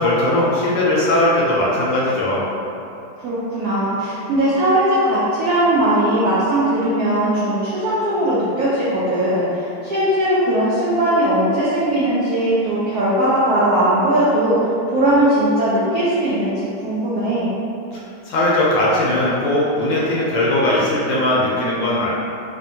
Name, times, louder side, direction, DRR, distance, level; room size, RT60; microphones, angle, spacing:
voice 1, 0.0-2.4 18.3-22.1, left 1 dB, 75° left, -6 dB, 1.2 m, -18 dB
voice 2, 3.2-17.5, right 1 dB, 85° right, -9 dB, 0.8 m, -19 dB
3.5 x 2.1 x 2.6 m, 2.7 s
omnidirectional pair, 2.3 m